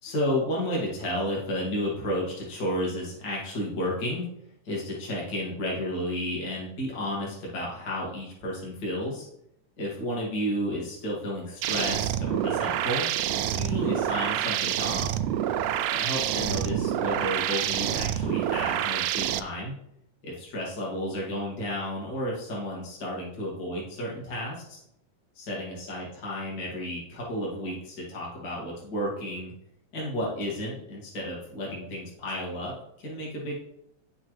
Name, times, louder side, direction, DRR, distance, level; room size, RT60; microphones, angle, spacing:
voice 1, 0.0-4.3 4.6-9.3 9.8-15.2 15.9-19.7 20.2-24.8 25.4-29.5 29.9-33.6, equal, 35° left, -4 dB, 2.1 m, -32 dB
sound 1, 11.6-19.4, right 11 dB, 80° right, 1.5 m, -27 dB
9.7 x 6.4 x 3.2 m, 0.76 s
omnidirectional pair, 3.5 m